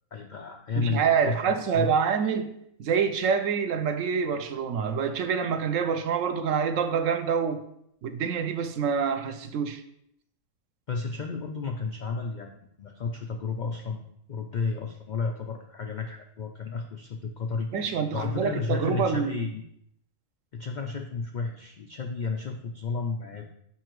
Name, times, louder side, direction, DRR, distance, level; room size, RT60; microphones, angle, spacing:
voice 1, 0.1-1.9 10.9-14.0 14.3-17.9 18.1-19.6 20.5-23.5, left 4 dB, 90° left, 3 dB, 0.4 m, -32 dB
voice 2, 0.8-2.5 2.8-7.6 8.0-9.8 17.7-19.4, right 6 dB, 70° right, 8 dB, 0.9 m, -26 dB
7.0 x 5.5 x 3.0 m, 0.73 s
omnidirectional pair, 1.5 m